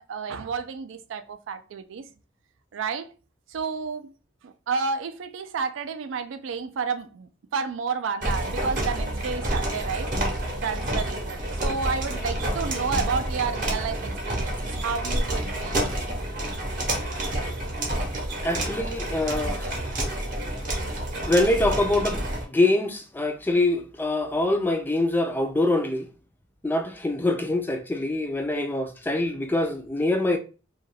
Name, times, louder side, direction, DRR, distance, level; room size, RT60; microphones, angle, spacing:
voice 1, 0.0-2.1 2.7-3.1 3.5-4.1 4.4-10.1 10.6-15.9, right 5 dB, 75° right, 0.4 m, -31 dB
sound 1, 8.2-22.4, right 1 dB, 45° right, 0.8 m, -29 dB
voice 2, 18.4-19.7 21.3-22.2 22.5-26.1 26.6-30.4, left 2 dB, 10° left, 0.3 m, -24 dB
2.3 x 2.2 x 3.2 m
head